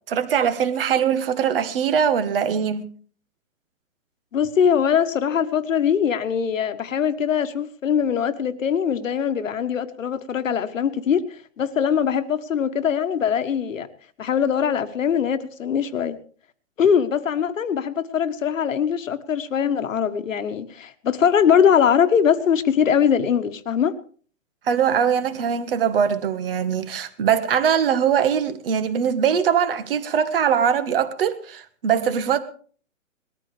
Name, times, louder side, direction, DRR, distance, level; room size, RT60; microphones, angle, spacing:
voice 1, 0.1-2.8 24.7-32.4, right 8 dB, 45° right, 1.5 m, -21 dB
voice 2, 4.3-13.9 14.2-16.2 16.8-23.9, left 8 dB, 70° left, 1.5 m, -21 dB
20.5 x 14.0 x 3.4 m
hypercardioid pair, 165°, 40 cm